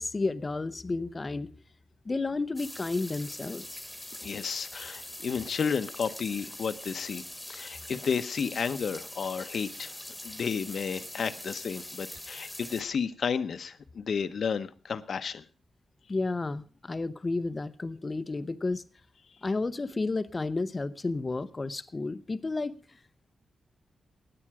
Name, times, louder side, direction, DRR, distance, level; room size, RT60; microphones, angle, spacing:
voice 1, 0.0-1.5 2.0-3.8 16.1-18.8 19.4-22.8, left 3 dB, 25° left, 0.7 m, -32 dB
sound 1, 2.6-12.8, left 1 dB, 5° left, 1.4 m, -43 dB
voice 2, 4.2-7.2 7.5-9.9 10.2-15.4, left 6 dB, 55° left, 0.9 m, -32 dB
16.5 x 9.9 x 4.8 m
wide cardioid pair, 140°, 0 cm